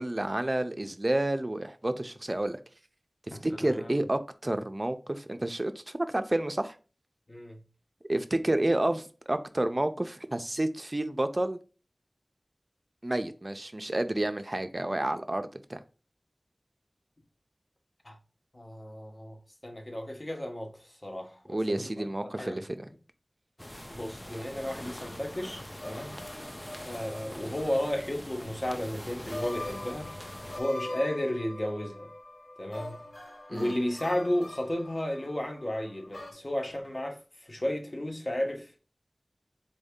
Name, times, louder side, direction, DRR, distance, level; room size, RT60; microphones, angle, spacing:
voice 1, 0.0-2.6 3.3-6.8 8.1-11.6 13.0-15.8 21.5-22.9 33.5-33.7, right 1 dB, 40° right, 0.4 m, -30 dB
voice 2, 3.3-3.9 7.3-7.6 18.0-18.2 18.5-22.0 22.4-22.6 23.9-26.2 26.8-30.1 30.6-32.0 32.6-33.1 33.5-38.8, left 1 dB, 40° left, 1.0 m, -33 dB
sound 1, 23.6-30.6, left 1 dB, 20° left, 0.4 m, -43 dB
sound 2, 24.6-28.2 28.5-28.6 29.3-36.3, left 1 dB, 70° left, 0.9 m, -43 dB
4.0 x 2.7 x 3.6 m
wide cardioid pair, 50°, 0 cm